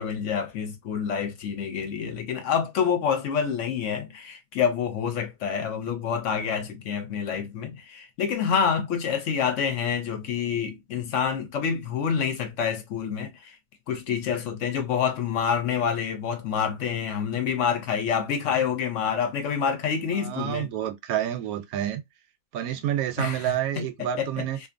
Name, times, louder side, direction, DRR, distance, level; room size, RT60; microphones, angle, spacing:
voice 1, 0.0-13.3 13.9-20.7 23.2-24.4, left 7 dB, 65° left, 0.9 m, -27 dB
voice 2, 20.1-22.0 22.5-24.6, right 11 dB, 85° right, 1.0 m, -28 dB
2.6 x 2.4 x 2.5 m
omnidirectional pair, 1.5 m